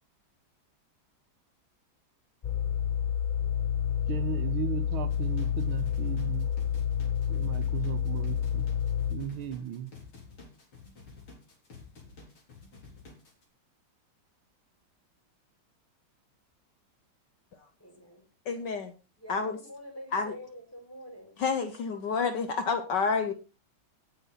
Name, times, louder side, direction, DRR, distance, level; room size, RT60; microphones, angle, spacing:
sound 1, 2.4-9.2, left 9 dB, 40° left, 0.6 m, -29 dB
voice 1, 4.1-6.5 7.3-8.7 9.1-9.9, right 9 dB, 90° right, 1.9 m, -36 dB
sound 2, 5.1-13.4, left 4 dB, 85° left, 4.6 m, -51 dB
voice 2, 17.8-18.2 19.2-21.3, equal, 5° left, 6.0 m, -46 dB
voice 3, 18.5-18.9 19.3-19.6 20.1-20.3 21.4-23.3, left 5 dB, 60° left, 1.7 m, -29 dB
17.0 x 7.3 x 4.2 m
omnidirectional pair, 2.2 m